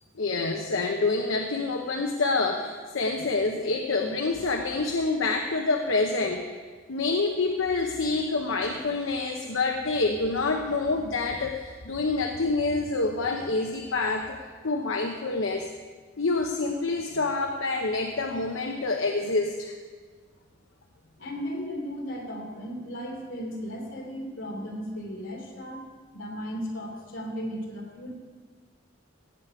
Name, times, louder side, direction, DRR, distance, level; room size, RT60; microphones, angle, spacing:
voice 1, 0.2-6.4 6.9-14.4 14.6-15.7 16.2-19.8, left 3 dB, 90° left, 3 dB, 0.8 m, -27 dB
voice 2, 21.2-25.8 26.1-28.1, equal, 70° left, -1 dB, 2.9 m, -35 dB
16.0 x 8.4 x 4.8 m, 1.5 s
head